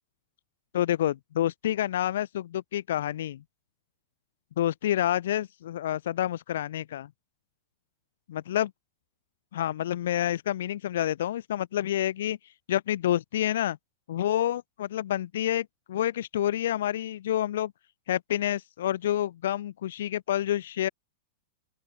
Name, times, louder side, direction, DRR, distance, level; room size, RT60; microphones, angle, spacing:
voice 1, 0.7-3.4 4.6-7.1 8.3-8.7 9.5-12.4 12.7-13.8 14.1-17.7 18.1-20.9, left 12 dB, 75° left, 0.4 m, -28 dB
open air
hypercardioid pair, 110°, 0 cm